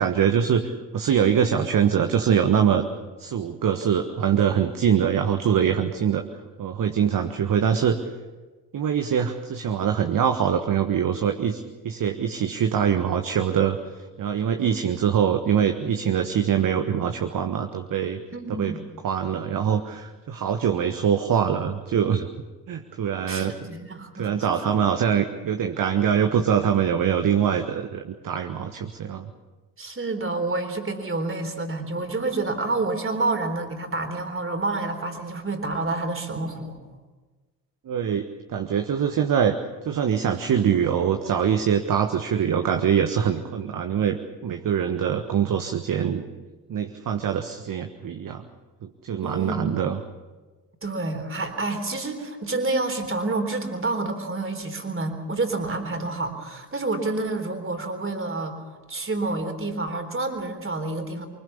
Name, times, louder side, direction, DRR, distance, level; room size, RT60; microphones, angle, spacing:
voice 1, 0.0-2.8 3.2-6.3 6.6-8.0 8.7-13.8 14.2-18.2 18.5-18.7 19.0-22.3 22.7-23.5 24.1-29.3 37.8-39.5 39.8-46.2 46.7-48.4 48.8-50.0, right 8 dB, 40° right, 7 dB, 1.4 m, -23 dB
voice 2, 18.3-18.8 23.3-24.8 29.8-36.8 49.2-49.8 50.8-61.3, right 2 dB, 25° right, 6 dB, 3.9 m, -28 dB
24.5 x 21.0 x 7.2 m, 1.3 s
figure-of-eight pair, 45°, 50 cm